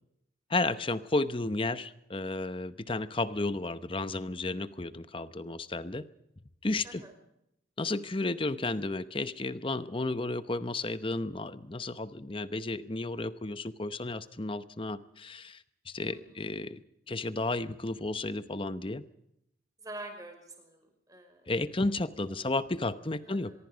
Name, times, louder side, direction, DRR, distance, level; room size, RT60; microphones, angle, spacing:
voice 1, 0.5-6.0 6.6-7.0 7.8-16.8 17.1-19.0 21.5-23.5, left 2 dB, 25° left, 13 dB, 0.8 m, -33 dB
voice 2, 19.8-21.5 22.2-22.4 23.2-23.6, right 2 dB, 20° right, 5 dB, 5.5 m, -46 dB
24.5 x 22.5 x 5.1 m, 0.80 s
head